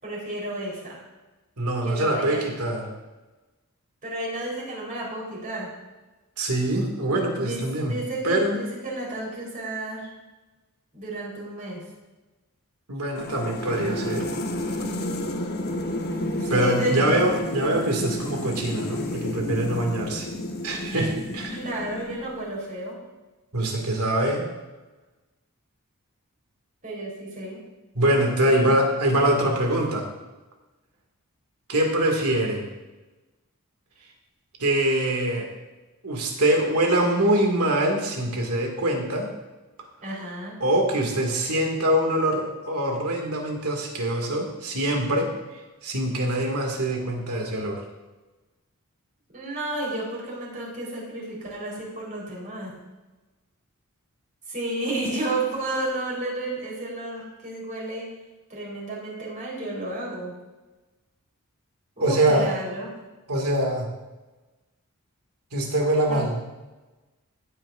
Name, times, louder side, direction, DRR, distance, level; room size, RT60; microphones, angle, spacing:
voice 1, 0.0-1.0 1.8-2.4 4.0-5.7 7.3-10.1 10.9-11.8 16.4-17.0 21.5-23.0 26.8-27.6 28.4-28.7 40.0-40.6 49.3-52.8 54.5-58.1 58.5-60.4 62.0-62.9 66.1-66.2, right 2 dB, 35° right, -4 dB, 3.9 m, -32 dB
voice 2, 1.6-2.9 6.4-7.9 8.2-8.6 12.9-14.3 16.5-20.3 20.6-21.6 23.5-24.5 28.0-30.1 31.7-32.7 34.6-35.5 36.0-39.3 40.6-45.3 45.8-47.8 62.0-62.5 63.3-63.9 65.5-66.3, right 1 dB, 85° right, 1 dB, 2.1 m, -24 dB
sound 1, 13.1-22.5, left 1 dB, 45° left, 1.0 m, -31 dB
16.5 x 9.0 x 2.5 m, 1.2 s
head